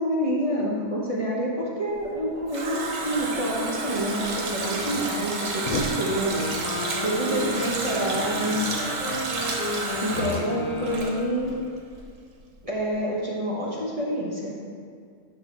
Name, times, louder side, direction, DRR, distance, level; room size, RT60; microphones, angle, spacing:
voice 1, 0.0-6.4 7.0-8.7 10.0-11.5 12.6-14.5, equal, 25° right, -5 dB, 1.1 m, -27 dB
Water tap faucet, 2.0-11.6 11.9-12.0, right 3 dB, 80° right, 1.5 m, -30 dB
sound 1, 5.6-6.9, left 2 dB, 80° left, 0.4 m, -32 dB
Wind instrument woodwind instrument, 6.3-11.5, left 2 dB, 65° left, 1.2 m, -33 dB
9.6 x 3.3 x 6.1 m, 2.1 s
omnidirectional pair, 1.6 m